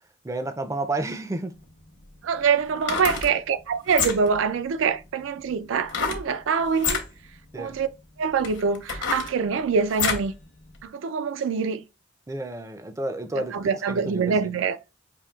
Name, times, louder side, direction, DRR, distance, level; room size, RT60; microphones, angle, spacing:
voice 1, 0.2-1.5 7.5-7.8 12.3-13.6 13.9-14.5, right 2 dB, 15° right, 0.3 m, -31 dB
sound 1, 1.5-1.6 2.7-3.3 3.9-4.4 5.9-6.3 6.7-7.1 7.8-7.9 8.4-10.3 10.7-10.8, left 6 dB, 75° left, 0.8 m, -28 dB
voice 2, 2.2-7.0 7.5-7.9 8.2-10.3 10.8-11.8 13.3-14.8, right 6 dB, 85° right, 0.4 m, -25 dB
5.1 x 2.7 x 2.3 m
head